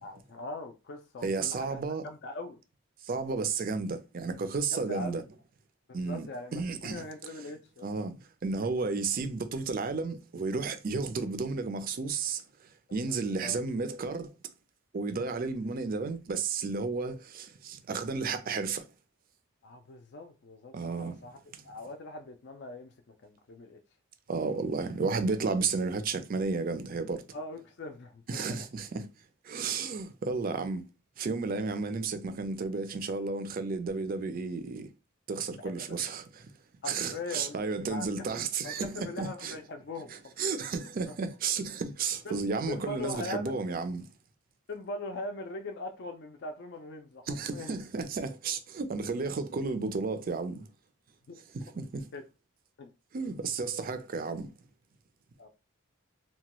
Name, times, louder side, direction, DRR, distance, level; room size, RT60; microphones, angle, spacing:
voice 1, 0.0-2.6 4.7-5.2 5.9-7.9 12.9-13.6 15.3-15.5 19.6-21.4 21.6-23.8 27.3-28.7 29.7-29.9 35.6-36.0 36.8-38.3 38.6-40.1 40.4-40.5 41.1-41.2 42.2-42.4 42.7-43.6 44.7-47.8 51.3-51.4 52.1-52.2 52.8-52.9 55.4-55.5, left 2 dB, 55° left, 0.4 m, -41 dB
voice 2, 1.2-2.0 3.0-5.2 5.9-7.0 7.8-12.4 12.9-14.3 14.9-18.9 20.7-21.2 21.5-21.6 24.3-27.2 28.3-29.1 29.4-30.8 31.2-34.9 35.3-36.5 36.9-39.6 40.4-44.1 47.3-50.7 51.5-52.1 53.1-54.5, right 4 dB, 45° right, 0.4 m, -32 dB
2.8 x 2.2 x 2.9 m
head